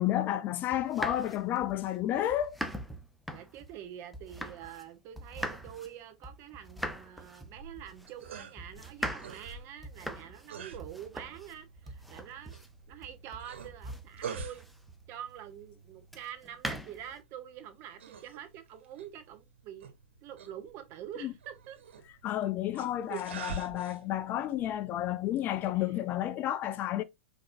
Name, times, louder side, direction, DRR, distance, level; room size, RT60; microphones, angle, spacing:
voice 1, 0.0-2.6 21.2-21.3 22.2-27.0, left 12 dB, 30° left, 0.4 m, -31 dB
sound 1, 0.7-4.9 5.2-15.1 16.1-17.2, equal, ahead, 0.7 m, -42 dB
voice 2, 3.3-12.5 12.9-14.7 15.1-19.9 20.2-21.8 23.1-23.3 25.7-26.0, right 10 dB, 40° right, 1.2 m, -46 dB
sound 2, 7.4-26.2, right 5 dB, 80° right, 1.7 m, -47 dB
5.2 x 3.8 x 2.7 m
hypercardioid pair, 130°, 6 cm